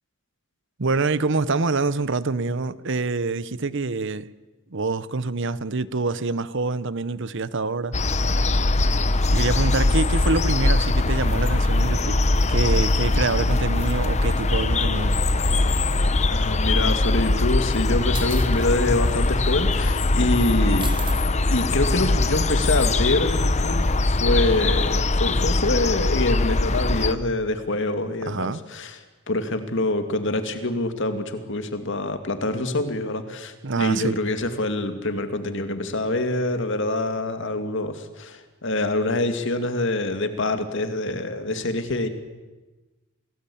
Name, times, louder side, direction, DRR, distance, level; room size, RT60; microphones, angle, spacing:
voice 1, 0.8-4.3 4.7-7.9 9.3-12.2 12.5-15.2 28.3-28.6 33.6-34.1, right 3 dB, 60° right, 0.9 m, -26 dB
sound 1, 7.9-27.1, left 2 dB, 35° left, 1.0 m, -21 dB
voice 2, 16.3-20.9 21.5-23.8 24.1-29.0 29.3-42.1, left 2 dB, 60° left, 2.4 m, -25 dB
sound 2, 18.1-18.7 19.7-19.9 20.8-21.2, right 5 dB, 25° right, 2.8 m, -36 dB
28.5 x 19.0 x 8.7 m
head